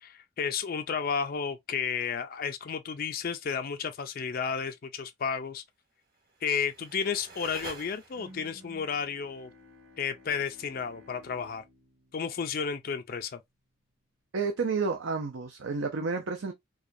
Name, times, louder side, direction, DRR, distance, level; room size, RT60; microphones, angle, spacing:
voice 1, 0.0-5.6 6.4-9.5 10.0-11.6 12.1-13.4, left 6 dB, 45° left, 0.4 m, -32 dB
sound 1, 6.1-8.5, right 3 dB, 45° right, 1.7 m, -47 dB
Bowed string instrument, 8.1-13.2, left 1 dB, 85° right, 2.5 m, -55 dB
voice 2, 14.3-16.5, right 4 dB, 65° right, 0.5 m, -30 dB
4.8 x 2.2 x 2.6 m
head